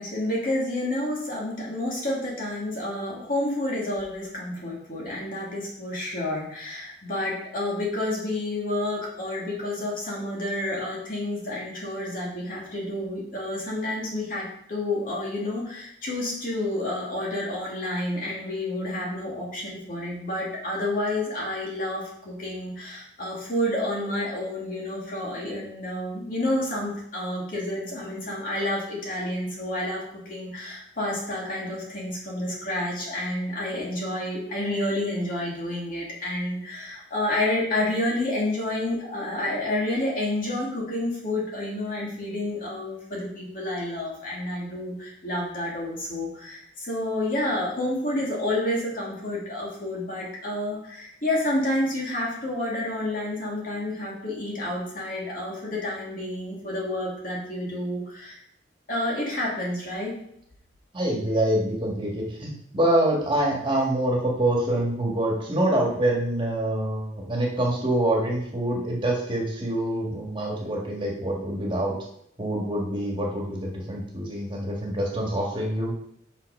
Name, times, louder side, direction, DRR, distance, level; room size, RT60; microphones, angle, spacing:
voice 1, 0.0-58.4 58.9-60.1, left 1 dB, 50° left, -4 dB, 2.6 m, -29 dB
voice 2, 60.9-71.9 72.4-75.9, right 1 dB, 30° right, -2 dB, 1.7 m, -25 dB
5.8 x 5.6 x 5.4 m, 0.72 s
head